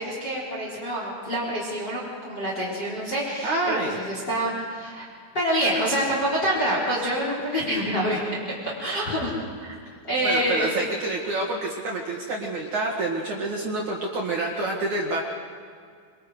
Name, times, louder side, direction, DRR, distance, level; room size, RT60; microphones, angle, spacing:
voice 1, 0.0-5.1 5.3-8.2 8.6-9.3 9.6-9.8 10.1-10.8, equal, 20° left, -5 dB, 4.1 m, -26 dB
voice 2, 3.4-4.0 10.2-15.2, right 2 dB, 60° right, -2 dB, 2.1 m, -27 dB
26.0 x 25.0 x 5.0 m, 2.1 s
omnidirectional pair, 5.8 m